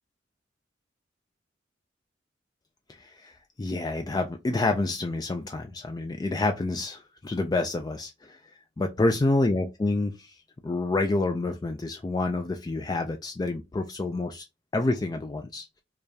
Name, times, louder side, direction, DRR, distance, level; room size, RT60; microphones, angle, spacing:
voice 1, 2.9-8.4 8.8-10.4 10.6-14.4 14.7-15.7, left 2 dB, 20° left, 0.3 m, -28 dB
4.8 x 2.3 x 2.7 m
head